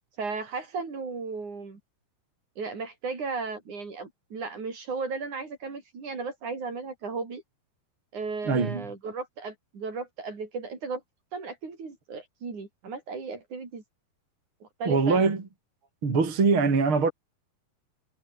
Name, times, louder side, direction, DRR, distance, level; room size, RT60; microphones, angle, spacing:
voice 1, 0.2-1.8 2.6-7.4 8.1-11.0 11.3-13.8 14.6-15.2, right 4 dB, 50° right, 6.0 m, -35 dB
voice 2, 8.5-8.9 14.9-15.4 16.0-17.1, right 4 dB, 35° right, 4.2 m, -23 dB
omnidirectional pair, 4.6 m